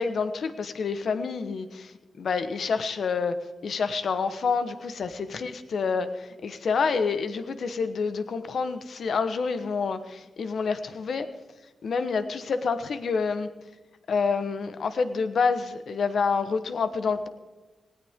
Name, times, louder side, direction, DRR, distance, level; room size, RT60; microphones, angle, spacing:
voice 1, 0.0-3.4 3.6-11.3 11.8-13.5 14.1-17.3, left 5 dB, 65° left, 10 dB, 1.1 m, -28 dB
18.5 x 17.0 x 3.7 m, 1.2 s
wide cardioid pair, 100°, 0 cm